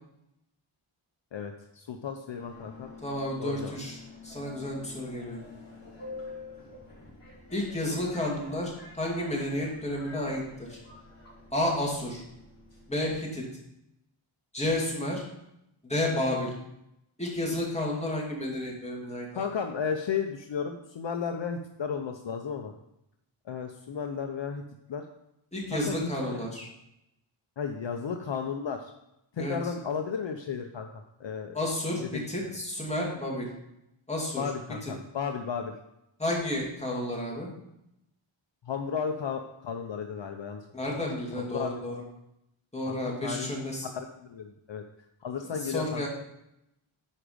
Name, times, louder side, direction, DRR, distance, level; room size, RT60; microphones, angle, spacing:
voice 1, 1.3-2.9 3.4-3.8 19.3-22.7 23.5-24.6 24.9-25.1 25.7-26.1 26.3-26.5 27.6-28.9 29.3-30.9 31.2-31.6 32.1-32.3 34.4-35.7 38.6-41.0 41.4-41.7 42.9-43.5 43.9-44.8 45.2-46.1, left 6 dB, 60° left, 5 dB, 0.7 m, -34 dB
Subway metro underground, 2.4-13.1, left 3 dB, 30° left, 3.7 m, -48 dB
voice 2, 3.0-4.0 4.2-5.4 7.5-10.8 11.5-12.2 12.9-13.4 14.5-15.2 15.8-16.5 17.2-19.5 25.5-26.7 29.4-29.6 31.5-32.0 32.3-33.5 34.1-34.4 34.8-34.9 36.2-37.5 40.7-42.0 42.7-43.9 45.4-46.1, left 1 dB, 15° left, -3 dB, 2.4 m, -31 dB
9.8 x 5.1 x 5.0 m, 0.84 s
wide cardioid pair, 105°, 50 cm